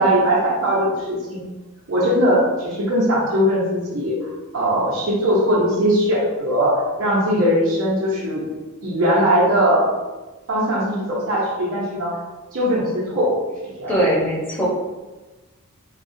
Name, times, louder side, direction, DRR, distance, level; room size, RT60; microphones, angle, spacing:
voice 1, 0.0-1.4 1.9-6.7 7.0-8.5 8.8-9.8 10.5-12.1 12.5-13.3 13.8-13.9, equal, 65° right, -8 dB, 0.9 m, -20 dB
voice 2, 13.9-14.6, right 1 dB, 10° left, -7 dB, 0.9 m, -20 dB
4.0 x 2.3 x 2.7 m, 1.2 s
head